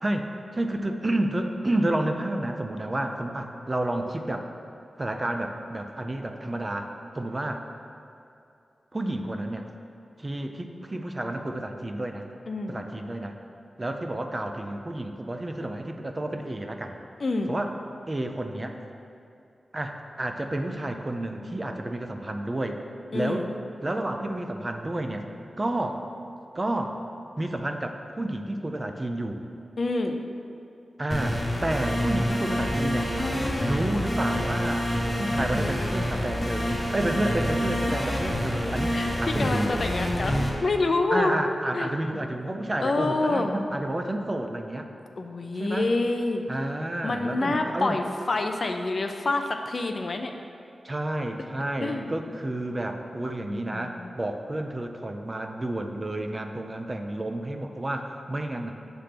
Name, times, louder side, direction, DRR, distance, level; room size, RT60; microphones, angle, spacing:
voice 1, 0.0-4.5 5.0-6.9 7.1-7.6 8.9-9.6 10.2-12.2 12.7-13.4 13.8-17.0 17.5-17.7 18.1-18.8 19.7-22.8 23.1-23.5 23.8-25.3 25.6-26.0 26.5-27.0 27.4-29.4 31.0-33.1 33.6-34.9 35.2-39.7 41.1-44.9 45.5-45.9 46.5-48.0 50.8-58.7, right 1 dB, 25° right, 5 dB, 0.4 m, -30 dB
voice 2, 12.5-12.8 17.2-17.5 23.1-23.5 29.8-30.2 38.9-39.1 39.4-41.4 41.7-41.9 42.8-43.5 45.2-46.4 47.0-50.3 51.8-52.1 53.5-54.1, left 2 dB, 45° left, 5 dB, 0.4 m, -27 dB
sound 1, 31.1-40.5, equal, 10° left, 1.0 m, -27 dB
7.7 x 3.4 x 5.8 m, 2.7 s
wide cardioid pair, 145°, 0 cm